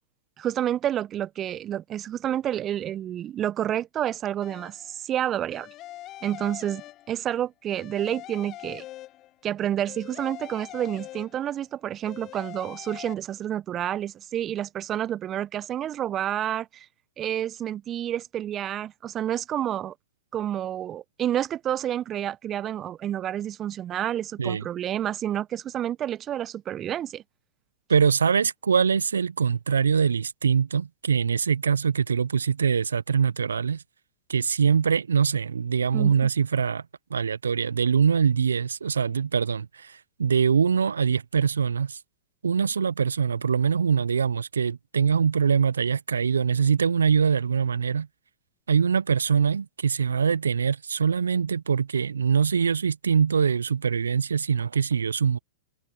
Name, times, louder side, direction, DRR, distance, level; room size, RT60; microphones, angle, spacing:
voice 1, 0.4-5.7 6.2-8.8 9.4-16.9 17.2-19.9 20.3-27.2 35.9-36.1, right 11 dB, 25° right, 1.2 m, -29 dB
sound 1, 4.4-5.0 5.5-7.4 7.7-9.5 9.9-11.7 12.0-13.1, left 15 dB, 35° left, 4.0 m, -43 dB
voice 2, 27.9-33.8 34.3-36.8 37.1-42.0 42.4-48.1 48.7-55.4, right 6 dB, 75° right, 1.1 m, -23 dB
figure-of-eight pair, 100°, 0 cm